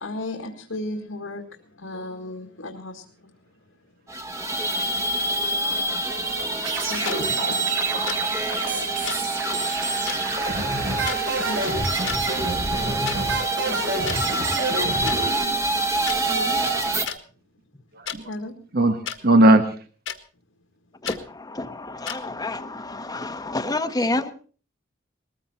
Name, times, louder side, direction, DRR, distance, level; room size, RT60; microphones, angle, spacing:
voice 1, 0.0-1.4 1.8-3.0 6.9-7.3 11.5-11.9 18.3-18.5, left 2 dB, 85° left, 3 dB, 2.0 m, -34 dB
sound 1, 4.1-17.1, right 2 dB, 15° right, 1.6 m, -26 dB
sound 2, 6.7-15.4, right 2 dB, 70° right, 7.4 m, -29 dB
sound 3, 7.1-7.2 8.1-8.2 9.1-9.2 10.1-10.2 11.1-11.2 11.9-12.2 13.1-13.2 14.1-14.2 15.1-15.2 16.1-16.2 17.1-17.2 18.1-18.2 19.1-19.2 20.1-20.2 21.1-21.2 22.1-22.2, left 8 dB, 70° left, 1.7 m, -31 dB
voice 2, 9.6-11.9 18.1-18.3 18.7-19.0 19.2-19.7, right 1 dB, 50° right, 7 dB, 1.5 m, -21 dB
voice 3, 21.0-24.3, left 2 dB, 20° left, 9 dB, 1.1 m, -29 dB
20.5 x 14.5 x 4.3 m, 0.41 s
head